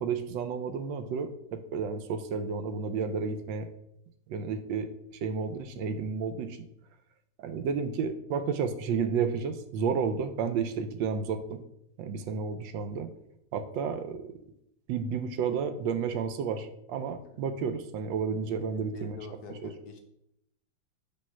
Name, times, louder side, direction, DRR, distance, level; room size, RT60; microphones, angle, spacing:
voice 1, 0.0-3.7 4.3-6.6 7.4-11.6 12.0-13.1 13.5-14.2 14.9-19.2 19.6-19.7, right 6 dB, 80° right, 9 dB, 1.3 m, -31 dB
voice 2, 18.6-20.0, left 5 dB, 65° left, 4 dB, 1.1 m, -44 dB
5.2 x 3.4 x 5.5 m, 0.78 s
omnidirectional pair, 2.0 m